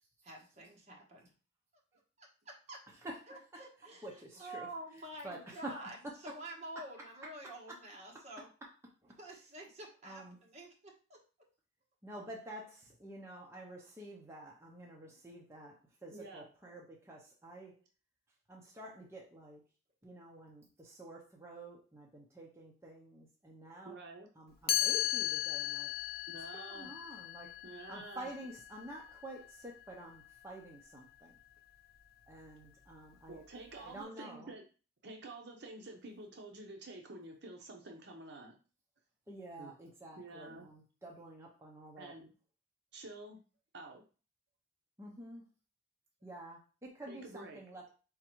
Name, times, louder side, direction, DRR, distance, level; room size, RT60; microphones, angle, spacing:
voice 1, 0.2-1.3 1.9-2.8 3.3-8.5 9.2-11.2, right 1 dB, 35° right, -1 dB, 1.1 m, -49 dB
voice 2, 4.0-4.7 5.2-5.8 6.0-6.1 7.7-7.8 9.0-9.1 10.0-10.4 12.0-17.7 18.5-19.6 20.0-23.9 24.4-25.9 26.5-27.5 27.9-31.3 32.3-33.4 33.8-34.5 39.3-42.1 45.0-45.4 46.2-47.9, right 1 dB, 15° right, -2 dB, 0.6 m, -49 dB
voice 3, 16.1-16.5 23.8-24.3 26.3-26.9 27.6-28.3 33.3-34.6 35.0-38.6 39.6-39.7 40.2-40.7 42.0-42.3 42.9-43.4 43.7-44.1 47.1-47.6, right 2 dB, 60° right, 2 dB, 0.7 m, -49 dB
Chime, 24.7-30.5, left 14 dB, 50° left, 0.5 m, -37 dB
4.2 x 3.6 x 3.0 m, 0.35 s
head